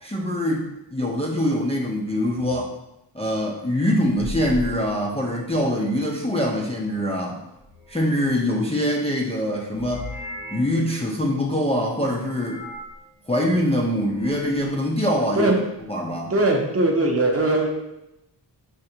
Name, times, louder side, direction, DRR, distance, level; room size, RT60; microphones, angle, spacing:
voice 1, 0.0-2.7 3.1-7.4 7.9-10.1 10.5-12.6 13.3-15.5 15.9-16.3, equal, 15° left, -3 dB, 0.4 m, -24 dB
sound 1, 4.2-5.7 7.6-8.7 9.7-10.9 12.3-13.0 13.9-14.8, left 1 dB, 80° left, 0.9 m, -38 dB
voice 2, 16.3-17.7, right 2 dB, 35° right, 1 dB, 0.6 m, -20 dB
4.4 x 2.4 x 2.8 m, 0.87 s
wide cardioid pair, 80°, 44 cm